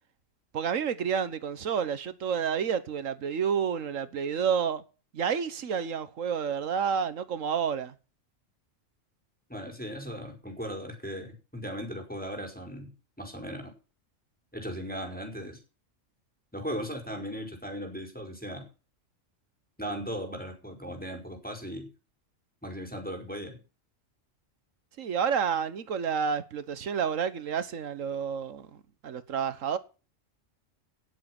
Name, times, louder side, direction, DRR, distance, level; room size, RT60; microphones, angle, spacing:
voice 1, 0.5-4.8 5.1-7.9 25.0-28.7 29.0-29.8, right 7 dB, 90° right, 1.5 m, -29 dB
voice 2, 9.5-13.7 14.5-15.6 16.5-18.7 19.8-21.9 22.6-23.6, equal, 5° left, 4.7 m, -37 dB
18.0 x 7.6 x 6.0 m
omnidirectional pair, 1.3 m